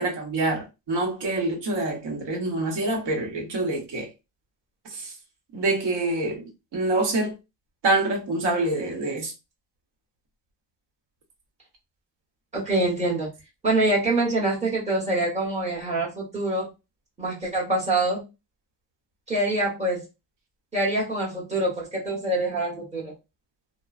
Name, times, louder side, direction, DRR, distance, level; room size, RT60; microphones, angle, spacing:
voice 1, 0.0-4.1 4.9-5.1 5.5-6.4 6.7-7.3 7.8-9.3, right 2 dB, 70° right, 1.0 m, -26 dB
voice 2, 12.5-13.3 13.6-16.7 17.2-18.2 19.3-20.0 20.7-23.1, right 2 dB, 15° right, 1.1 m, -25 dB
3.0 x 2.0 x 2.4 m
cardioid pair, 165°, 43 cm